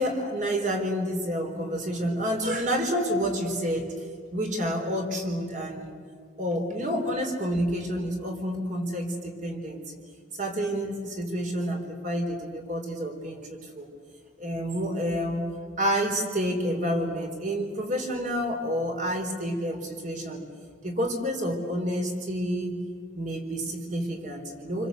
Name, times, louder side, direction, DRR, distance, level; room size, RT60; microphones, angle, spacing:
voice 1, 0.0-3.9 4.3-5.9 6.4-9.8 10.4-13.9 14.4-15.5 15.8-20.4 20.8-22.8 23.1-24.9, equal, 40° right, 3 dB, 4.3 m, -29 dB
28.0 x 25.0 x 8.1 m, 2.1 s
head